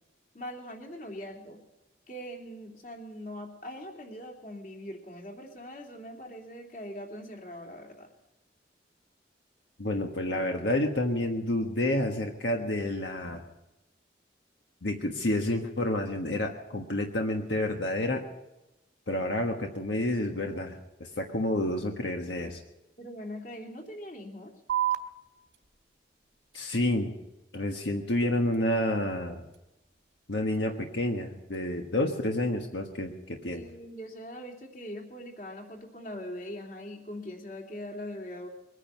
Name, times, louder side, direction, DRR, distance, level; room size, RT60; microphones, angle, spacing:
voice 1, 0.3-1.6 2.1-8.1 23.0-24.5 30.4-30.8 33.5-38.5, equal, 45° left, 1 dB, 3.0 m, -42 dB
voice 2, 9.8-13.4 14.8-18.2 19.1-22.6 26.5-27.1 27.5-29.4 30.3-33.7, left 1 dB, 80° left, 2 dB, 1.4 m, -29 dB
sound 1, 24.7-31.7, right 12 dB, 80° right, 1.6 m, -39 dB
22.5 x 9.9 x 5.9 m, 0.97 s
head